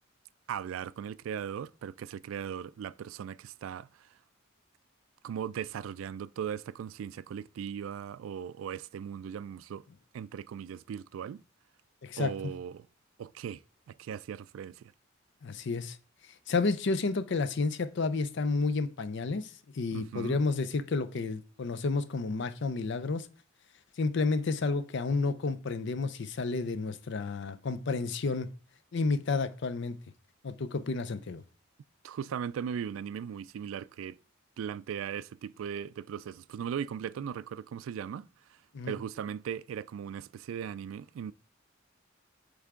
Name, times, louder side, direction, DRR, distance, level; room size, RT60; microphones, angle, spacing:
voice 1, 0.5-4.1 5.2-9.8 10.1-11.4 12.2-12.9 13.2-13.6 13.9-14.9 19.9-20.4 32.0-34.2 34.6-38.6 38.8-41.3, right 8 dB, 90° right, 0.3 m, -38 dB
voice 2, 15.4-16.0 16.5-19.5 19.8-23.3 24.0-28.5 28.9-30.0 30.4-31.4 38.7-39.0, left 3 dB, 65° left, 0.5 m, -31 dB
8.1 x 3.4 x 3.6 m
head